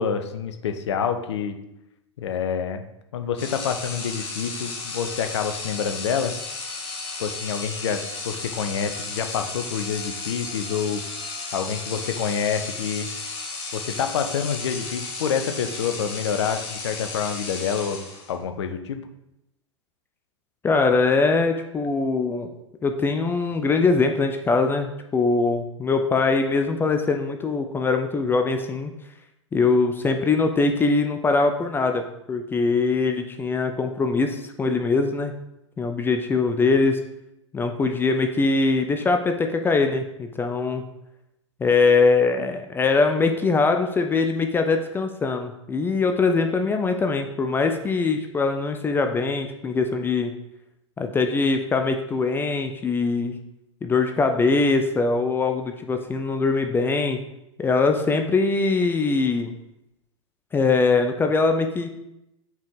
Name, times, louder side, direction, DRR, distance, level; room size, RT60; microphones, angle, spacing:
voice 1, 0.0-1.6 2.2-2.8 3.1-6.3 7.2-11.0 11.5-13.1 13.7-19.0, left 7 dB, 65° left, 7 dB, 0.7 m, -27 dB
sound 1, 3.4-18.4, left 3 dB, 30° left, 1.7 m, -34 dB
voice 2, 20.6-22.5 22.8-28.9 29.5-32.0 32.3-35.3 35.8-37.0 37.5-40.8 41.6-50.3 51.0-53.3 53.8-57.2 57.6-59.5 60.5-61.9, left 4 dB, 15° left, 6 dB, 0.4 m, -22 dB
5.8 x 4.5 x 3.7 m, 0.87 s
figure-of-eight pair, 95°, 16 cm